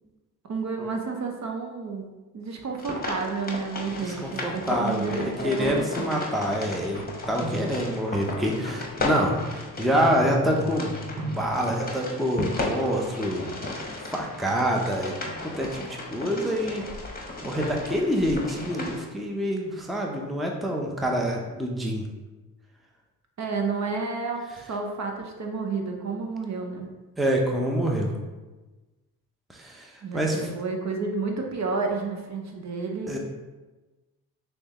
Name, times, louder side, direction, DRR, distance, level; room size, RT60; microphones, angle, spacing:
voice 1, 0.4-6.2 23.4-26.9 30.0-33.2, right 4 dB, 40° right, 2 dB, 0.8 m, -31 dB
sound 1, 2.8-19.0, left 2 dB, 20° left, 1.0 m, -35 dB
voice 2, 4.0-10.9 11.3-13.7 14.0-15.1 15.4-16.9 17.4-22.1 27.2-28.1 29.5-30.5 33.1-33.2, equal, ahead, 0 dB, 0.6 m, -27 dB
sound 2, 6.7-11.8, right 1 dB, 70° right, 1.0 m, -36 dB
6.2 x 2.1 x 3.0 m, 1.2 s
hypercardioid pair, 50°, 41 cm